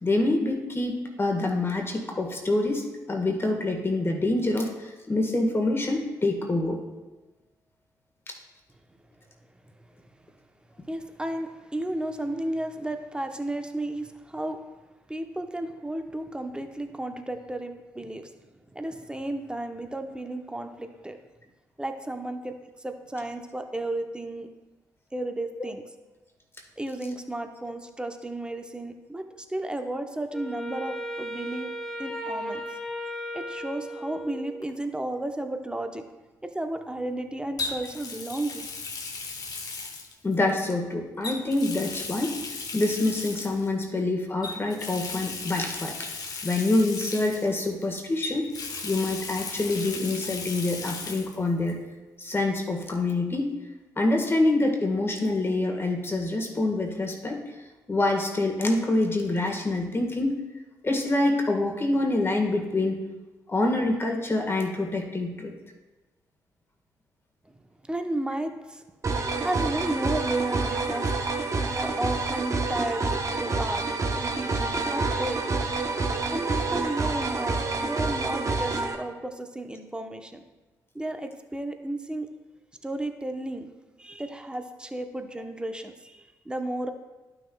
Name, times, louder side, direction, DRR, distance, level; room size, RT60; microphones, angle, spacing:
voice 1, 0.0-6.8 8.3-8.4 40.2-42.4 42.7-46.1 46.4-48.5 48.8-51.8 52.2-53.5 54.0-57.4 57.9-60.4 60.8-63.0 63.5-65.5, left 2 dB, 30° left, 2 dB, 1.6 m, -26 dB
voice 2, 10.9-14.6 15.1-18.3 18.7-21.2 21.8-24.5 25.1-25.8 26.8-31.7 32.0-32.8 33.3-36.0 36.4-38.7 67.9-68.8 69.4-71.1 71.6-73.9 74.1-75.6 76.3-80.4 80.9-82.3 82.8-83.7 84.0-86.9, right 1 dB, 10° right, 6 dB, 0.9 m, -33 dB
Wind instrument woodwind instrument, 30.3-34.7, equal, 5° left, 1.2 m, -35 dB
Water tap faucet, 34.6-34.8 37.6-40.6 41.2-43.7 44.4-47.8 48.2-51.4 51.7-51.8 53.3-53.4, left 4 dB, 50° left, 1.1 m, -36 dB
sound 1, 69.0-78.9, right 3 dB, 40° right, 0.9 m, -28 dB
12.0 x 6.1 x 2.3 m, 1.2 s
hypercardioid pair, 45°, 8 cm